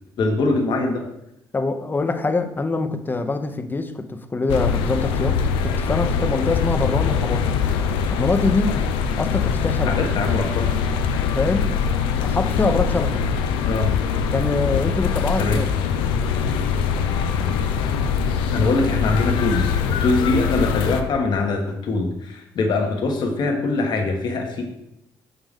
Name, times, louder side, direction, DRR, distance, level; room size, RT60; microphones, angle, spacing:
voice 1, 0.2-1.1 9.8-10.7 13.6-13.9 15.4-15.6 18.5-24.6, left 3 dB, 65° left, 3 dB, 1.2 m, -22 dB
voice 2, 1.5-7.5 8.1-8.8 9.2-10.0 11.3-11.7 12.2-13.2 14.3-15.7, left 3 dB, 25° left, 8 dB, 0.7 m, -24 dB
sound 1, 4.5-21.0, left 6 dB, 90° left, 0.5 m, -22 dB
5.9 x 5.3 x 3.6 m, 0.81 s
supercardioid pair, 75°, 8 cm